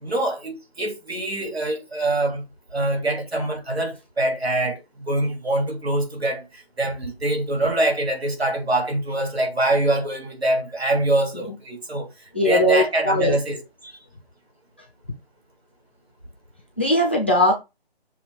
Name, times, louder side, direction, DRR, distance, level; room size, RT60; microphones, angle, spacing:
voice 1, 0.0-2.4 2.7-12.1 12.4-13.9, right 1 dB, 85° right, 3.0 m, -24 dB
voice 2, 12.3-13.4 16.8-17.5, left 1 dB, 10° left, 0.6 m, -19 dB
7.0 x 2.9 x 4.6 m
figure-of-eight pair, 165°, 31 cm